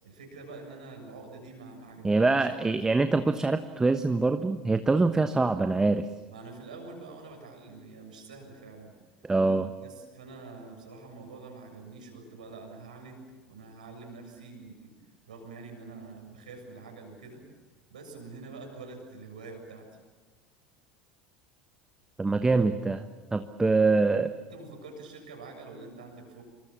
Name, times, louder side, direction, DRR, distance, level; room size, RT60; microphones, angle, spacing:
voice 1, 0.0-2.7 6.3-8.9 9.8-14.9 15.3-17.5 17.9-19.9 24.5-26.4, right 3 dB, 75° right, 2 dB, 7.1 m, -46 dB
voice 2, 2.0-6.1 9.2-9.7 22.2-24.3, right 3 dB, 15° right, 9 dB, 1.2 m, -24 dB
27.0 x 24.5 x 7.3 m, 1.3 s
figure-of-eight pair, 75°, 4 cm